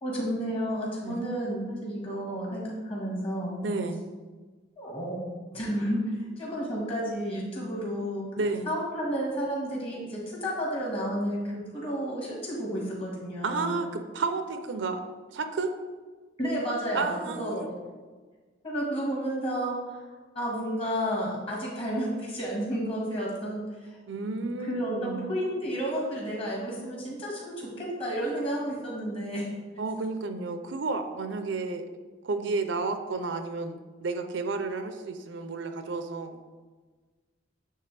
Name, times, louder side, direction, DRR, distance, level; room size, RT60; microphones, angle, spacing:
voice 1, 0.0-3.6 4.8-5.2 5.5-6.0 6.4-8.3 8.7-13.7 16.4-17.7 18.6-20.0 20.3-23.6 24.7-29.5, equal, 30° left, -3 dB, 1.7 m, -31 dB
voice 2, 3.6-4.1 8.4-8.7 13.4-15.0 15.3-15.7 16.9-17.7 24.1-25.3 29.8-31.9 32.2-36.4, right 3 dB, 75° right, 8 dB, 0.5 m, -31 dB
9.0 x 3.4 x 3.3 m, 1.4 s
head